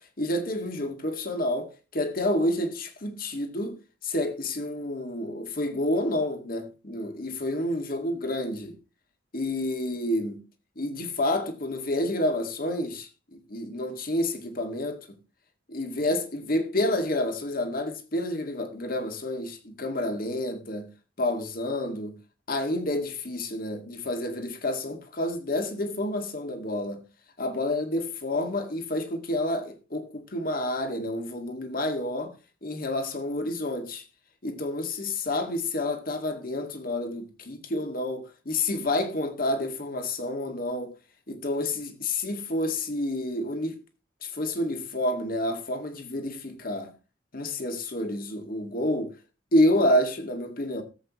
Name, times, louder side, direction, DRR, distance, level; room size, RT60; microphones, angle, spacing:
voice 1, 0.2-3.8 4.0-8.8 9.3-10.4 10.8-15.2 15.7-20.9 21.2-22.2 22.5-27.0 27.4-32.3 32.6-34.0 34.4-40.9 41.3-43.8 44.2-46.9 47.3-49.1 49.5-50.8, left 1 dB, 50° left, 2.0 m, -29 dB
18.0 x 8.0 x 3.1 m
head